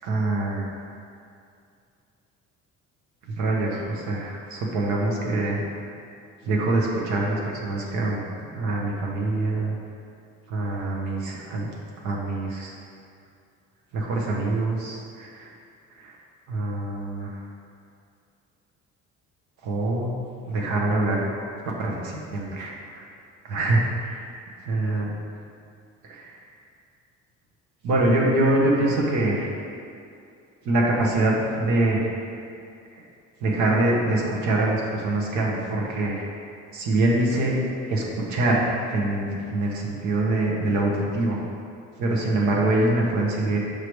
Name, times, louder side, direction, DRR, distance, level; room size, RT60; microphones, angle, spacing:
voice 1, 0.0-0.8 3.4-5.6 6.4-8.2 8.5-9.7 10.5-11.7 12.0-12.7 13.9-15.5 16.0-16.1 16.5-17.3 19.6-20.1 20.5-21.3 21.6-23.0 23.4-24.2 24.6-25.2 26.0-26.3 27.8-29.5 30.6-32.3 33.4-36.3 36.7-37.6 37.9-41.4 42.0-43.6, right 2 dB, 90° right, -3 dB, 1.1 m, -24 dB
6.6 x 4.9 x 3.2 m, 2.4 s
cardioid pair, 135°, 29 cm